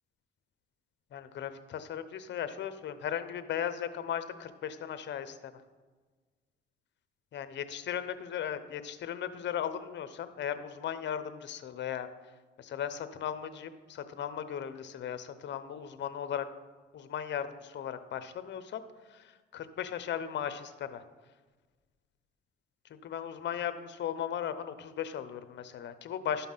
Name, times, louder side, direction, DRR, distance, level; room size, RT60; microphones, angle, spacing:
voice 1, 1.1-5.4 7.3-12.1 12.6-16.5 16.9-18.8 19.1-19.2 19.5-21.0 23.0-26.5, left 9 dB, 65° left, 11 dB, 0.9 m, -37 dB
12.0 x 5.8 x 5.6 m, 1.4 s
cardioid pair, 90°, 20 cm